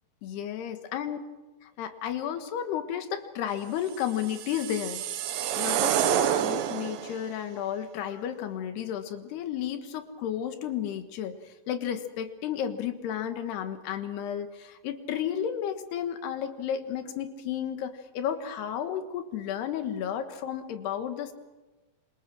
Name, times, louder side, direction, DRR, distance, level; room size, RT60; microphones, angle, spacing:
voice 1, 0.2-1.2 1.6-5.0 5.4-21.3, left 9 dB, 90° left, 8 dB, 3.6 m, -33 dB
sound 1, 4.0-7.2, right 10 dB, 75° right, 2.8 m, -28 dB
26.5 x 26.5 x 6.1 m, 1.2 s
omnidirectional pair, 4.5 m